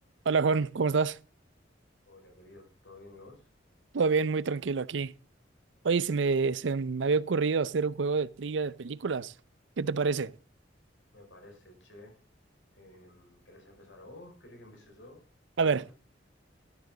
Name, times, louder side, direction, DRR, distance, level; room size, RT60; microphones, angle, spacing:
voice 1, 0.3-1.2 3.9-5.1 5.8-9.3 9.8-10.3 15.6-15.9, right 4 dB, 70° right, 0.5 m, -27 dB
voice 2, 2.1-3.5 11.1-12.2 12.7-15.2 15.6-15.9, left 2 dB, 85° left, 5.7 m, -52 dB
12.5 x 12.0 x 3.9 m
head